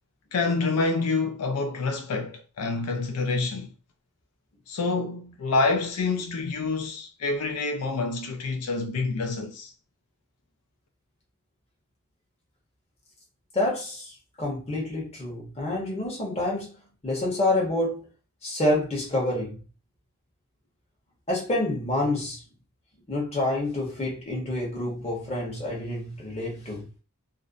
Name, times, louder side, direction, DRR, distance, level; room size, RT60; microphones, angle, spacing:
voice 1, 0.3-3.7 4.7-9.7, left 3 dB, 85° left, 0.4 m, -27 dB
voice 2, 13.5-16.8 17.0-18.0 18.4-19.6 21.3-22.4 23.1-26.9, left 1 dB, 25° left, 0.9 m, -28 dB
2.5 x 2.0 x 2.4 m
head